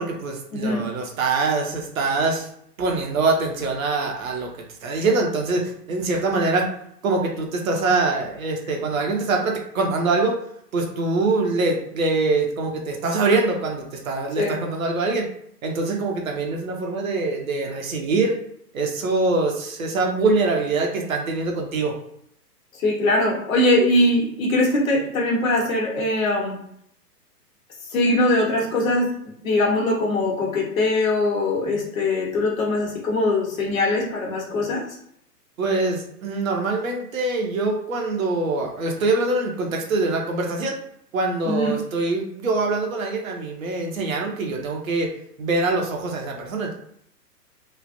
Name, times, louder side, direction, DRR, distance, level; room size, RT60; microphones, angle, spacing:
voice 1, 0.0-2.5 2.8-4.5 4.8-6.7 7.0-10.4 10.7-15.3 15.6-18.4 18.7-21.9 35.6-40.7 41.1-45.1 45.4-46.7, right 3 dB, 55° right, 1 dB, 0.9 m, -24 dB
voice 2, 0.5-0.8 14.4-14.6 22.8-26.6 27.9-29.1 29.4-34.8 41.5-41.8, left 2 dB, 55° left, -1 dB, 1.2 m, -21 dB
3.2 x 2.4 x 2.6 m, 0.71 s
figure-of-eight pair, 115°, 48 cm